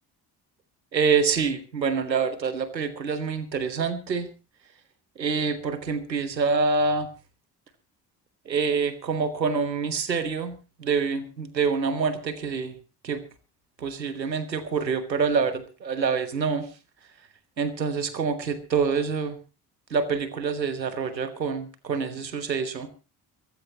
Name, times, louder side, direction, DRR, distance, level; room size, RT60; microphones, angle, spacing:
voice 1, 0.9-4.3 5.2-7.1 8.4-12.7 13.0-13.2 13.8-16.7 17.6-19.4 19.9-22.9, right 5 dB, 90° right, 13 dB, 1.3 m, -26 dB
23.0 x 14.5 x 2.9 m, 0.32 s
figure-of-eight pair, 45°, 49 cm